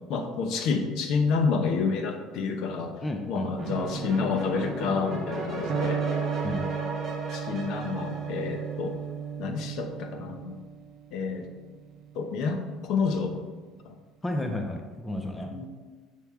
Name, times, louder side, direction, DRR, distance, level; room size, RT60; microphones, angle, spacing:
voice 1, 0.1-3.0 3.3-6.0 7.3-9.0 9.4-10.6 11.1-11.5 12.1-13.4 13.8-14.0 15.4-15.7, left 5 dB, 55° left, 6 dB, 0.8 m, -29 dB
voice 2, 3.0-3.7 6.4-6.6 14.2-15.7, left 1 dB, 10° left, 3 dB, 0.6 m, -32 dB
sound 1, 3.6-9.0, right 2 dB, 25° right, 1.9 m, -35 dB
Electric guitar, 5.7-13.5, right 7 dB, 55° right, 0.6 m, -35 dB
7.1 x 6.1 x 3.6 m, 1.3 s
cardioid pair, 155°, 0 cm